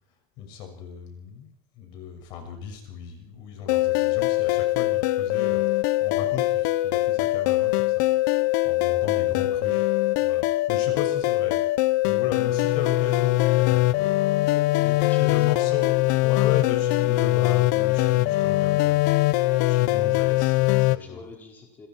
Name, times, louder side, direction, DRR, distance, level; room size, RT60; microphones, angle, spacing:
voice 1, 0.4-1.5 1.8-8.0 8.6-9.9 10.2-11.6 12.0-14.2 14.5-15.9 16.2-19.2 19.7-21.2, left 7 dB, 50° left, 6 dB, 6.1 m, -36 dB
sound 1, 3.7-21.0, left 18 dB, 65° left, 0.8 m, -22 dB
voice 2, 8.9-9.6 10.8-11.4 14.5-16.3 20.7-21.9, left 3 dB, 15° left, 0 dB, 5.2 m, -46 dB
28.0 x 21.5 x 4.6 m, 0.68 s
supercardioid pair, 155°, 10 cm